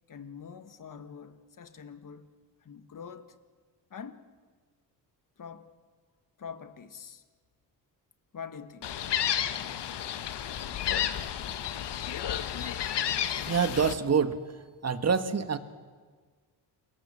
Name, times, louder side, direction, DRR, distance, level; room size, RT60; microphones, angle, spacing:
voice 1, 0.1-2.3 2.6-3.4 3.9-4.3 5.4-5.7 6.4-7.2 8.3-9.0, left 6 dB, 45° left, 1.8 m, -45 dB
Gull seagull, 8.8-13.9, left 10 dB, 70° left, 1.4 m, -31 dB
voice 2, 13.3-14.4 14.8-15.6, right 6 dB, 35° right, 1.7 m, -26 dB
28.0 x 22.5 x 7.6 m
cardioid pair, 95°, 43 cm